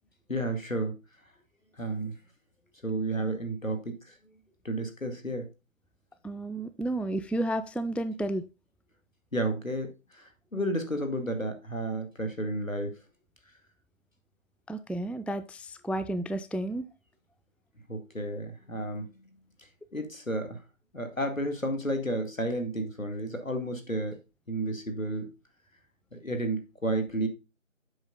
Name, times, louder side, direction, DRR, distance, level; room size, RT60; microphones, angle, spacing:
voice 1, 0.3-0.9 1.8-2.1 2.8-4.1 4.6-5.5 9.3-12.9 17.9-19.1 19.9-20.6 20.9-24.2 24.5-25.3 26.1-27.3, right 1 dB, 80° left, 6 dB, 2.2 m, -32 dB
voice 2, 6.2-8.4 14.7-16.9, right 1 dB, 5° left, 11 dB, 0.3 m, -32 dB
7.9 x 5.7 x 3.8 m, 0.28 s
figure-of-eight pair, 180°, 40 cm